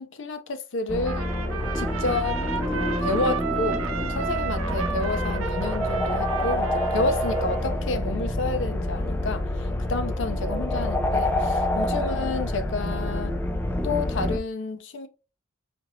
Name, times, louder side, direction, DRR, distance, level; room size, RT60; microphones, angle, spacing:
voice 1, 0.0-1.3 1.7-2.4 2.7-13.4 13.8-15.1, left 3 dB, 60° left, 0.5 m, -30 dB
sound 1, 0.9-14.4, left 1 dB, 10° left, 0.4 m, -27 dB
Trumpet, 1.0-7.8, right 6 dB, 85° right, 0.6 m, -33 dB
4.4 x 2.8 x 2.6 m
head